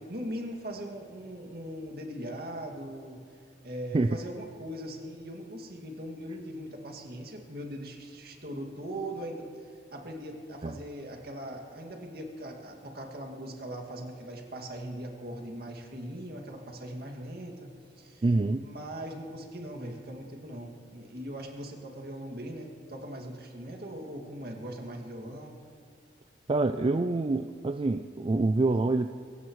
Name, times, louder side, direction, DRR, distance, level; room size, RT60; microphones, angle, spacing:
voice 1, 0.1-3.2 3.6-9.5 9.9-17.7 18.0-18.2 18.6-25.6, right 1 dB, 60° right, 1 dB, 2.2 m, -40 dB
voice 2, 18.2-18.7 26.5-29.1, right 2 dB, 30° right, 8 dB, 0.4 m, -26 dB
23.5 x 16.5 x 3.2 m, 2.2 s
head